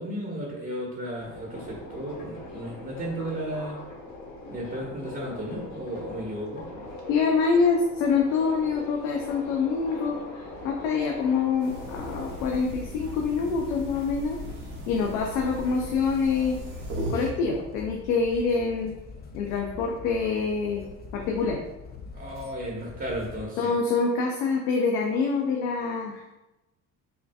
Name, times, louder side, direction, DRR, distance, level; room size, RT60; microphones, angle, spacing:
voice 1, 0.0-3.8 4.5-6.7 22.1-23.7, right 1 dB, 30° right, -3 dB, 1.2 m, -34 dB
Subway metro underground, 1.2-12.6, left 2 dB, 55° left, 1.2 m, -41 dB
voice 2, 7.1-10.2 10.6-14.4 14.9-16.6 17.1-18.9 19.3-20.8 21.1-21.6 23.6-26.3, left 5 dB, 90° left, 0 dB, 0.6 m, -25 dB
sound 1, 11.6-17.3, right 1 dB, 90° right, 1.3 m, -38 dB
sound 2, 11.9-23.4, left 4 dB, 25° left, 0.5 m, -44 dB
5.8 x 2.6 x 2.3 m, 1.0 s
supercardioid pair, 70°, 42 cm